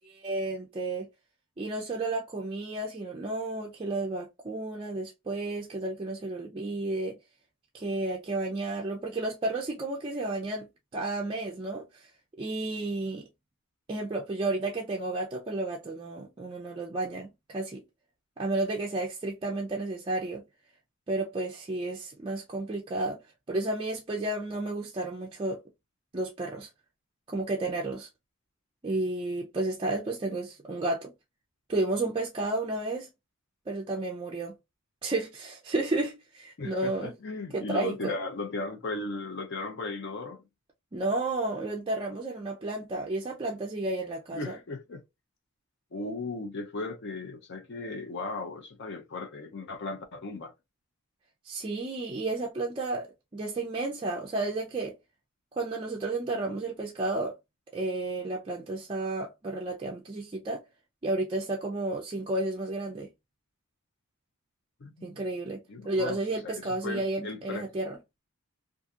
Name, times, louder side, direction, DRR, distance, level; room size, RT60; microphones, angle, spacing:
voice 1, 0.0-1.1 1.6-7.2 7.7-12.1 12.4-13.3 13.9-17.8 18.4-20.4 21.1-23.2 23.5-25.6 26.1-26.7 27.3-28.1 28.8-31.1 31.7-33.1 33.7-34.6 35.0-37.1 37.5-38.2 40.9-44.6 51.4-53.1 53.3-55.0 55.6-57.4 57.7-60.6 61.0-63.1 65.0-68.0, right 2 dB, 25° right, 0.4 m, -32 dB
voice 2, 36.6-40.4 44.3-45.0 45.9-50.5 64.8-65.2 65.7-67.6, left 3 dB, 50° left, 0.5 m, -36 dB
2.7 x 2.4 x 2.3 m
head